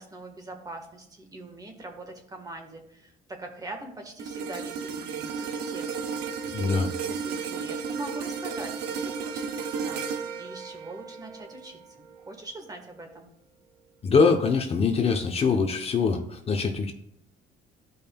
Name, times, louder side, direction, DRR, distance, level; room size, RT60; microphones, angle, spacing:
voice 1, 0.0-6.3 7.0-13.3, right 2 dB, 20° right, 3 dB, 1.5 m, -42 dB
sound 1, 4.2-12.5 13.0-13.2, right 6 dB, 80° right, 0.8 m, -34 dB
voice 2, 6.5-6.9 14.0-16.9, left 5 dB, 35° left, 4 dB, 0.8 m, -23 dB
14.0 x 5.4 x 2.3 m, 0.73 s
cardioid pair, 110°, 17 cm